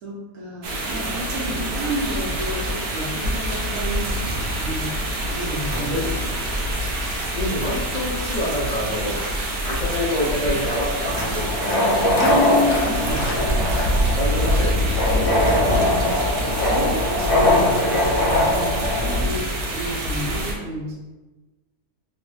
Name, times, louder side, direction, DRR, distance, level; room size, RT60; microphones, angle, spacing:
voice 1, 0.0-4.9 5.3-6.4 12.2-13.5 14.8-15.1 16.6-17.6 18.1-21.0, left 1 dB, 90° right, -3 dB, 1.2 m, -30 dB
sound 1, 0.6-20.5, equal, 65° right, 0.7 m, -26 dB
voice 2, 0.9-1.4 5.7-6.1 7.3-9.2 9.7-12.2 12.9-16.2 17.7-18.0, left 1 dB, 80° left, -7 dB, 0.3 m, -28 dB
Walk footsteps, 6.1-14.8, equal, 65° left, 0.8 m, -32 dB
sound 2, 11.0-19.2, left 1 dB, 35° left, 0.6 m, -22 dB
3.0 x 2.0 x 3.1 m, 1.2 s
omnidirectional pair, 1.5 m